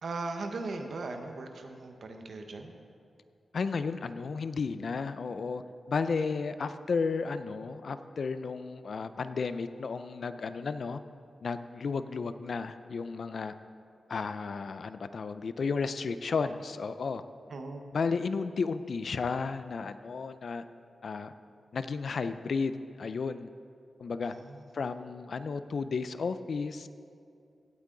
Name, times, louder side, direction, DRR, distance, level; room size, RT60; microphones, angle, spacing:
voice 1, 0.0-2.7 17.5-17.8 24.3-24.6, right 3 dB, 60° right, 5 dB, 1.0 m, -38 dB
voice 2, 3.5-5.6 5.9-11.0 11.4-13.5 14.1-17.2 17.9-20.6 21.0-21.3 21.7-23.5 24.0-24.3 24.7-26.9, left 4 dB, 55° left, 12 dB, 0.4 m, -33 dB
16.5 x 8.4 x 3.9 m, 2.4 s
wide cardioid pair, 150°, 0 cm